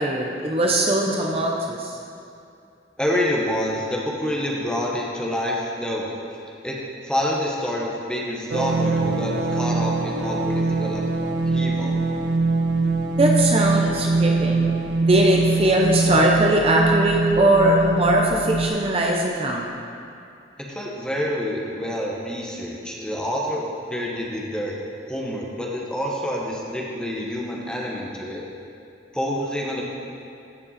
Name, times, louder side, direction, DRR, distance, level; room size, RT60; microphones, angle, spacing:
voice 1, 0.0-2.0 13.2-14.6 15.0-19.7, right 1 dB, 35° right, -1 dB, 0.7 m, -20 dB
voice 2, 3.0-6.1 6.6-6.8 7.0-11.0 11.4-12.1 20.6-24.7 25.1-28.4 29.1-29.9, equal, 5° left, -3 dB, 1.0 m, -27 dB
sound 1, 8.5-18.7, right 3 dB, 90° right, 0.8 m, -23 dB
14.5 x 5.3 x 4.2 m, 2.6 s
head